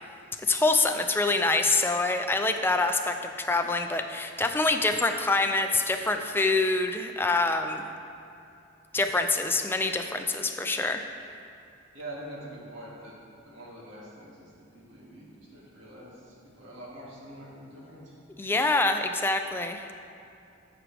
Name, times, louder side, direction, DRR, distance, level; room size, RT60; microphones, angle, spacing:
voice 1, 0.5-7.8 8.9-11.0 18.4-19.8, left 3 dB, 10° left, 5 dB, 0.4 m, -25 dB
voice 2, 11.9-13.1 13.4-18.2, right 1 dB, 90° right, -5 dB, 2.3 m, -45 dB
14.0 x 6.1 x 3.4 m, 2.6 s
head